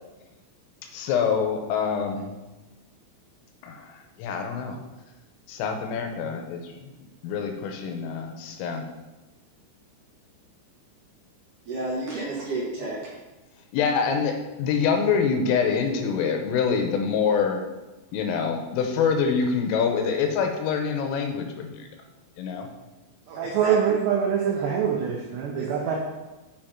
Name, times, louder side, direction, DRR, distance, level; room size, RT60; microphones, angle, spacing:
voice 1, 0.9-2.3 3.6-4.8 5.5-6.9 7.2-8.9 13.7-17.6 18.1-21.9 22.4-22.7, left 6 dB, 80° left, 4 dB, 3.3 m, -25 dB
voice 2, 11.7-13.0 23.6-23.7 24.5-24.7 25.5-26.0, right 2 dB, 55° right, -7 dB, 2.6 m, -32 dB
voice 3, 23.3-25.9, right 7 dB, 80° right, -1 dB, 2.4 m, -24 dB
8.8 x 5.9 x 4.4 m, 1.1 s
omnidirectional pair, 6.0 m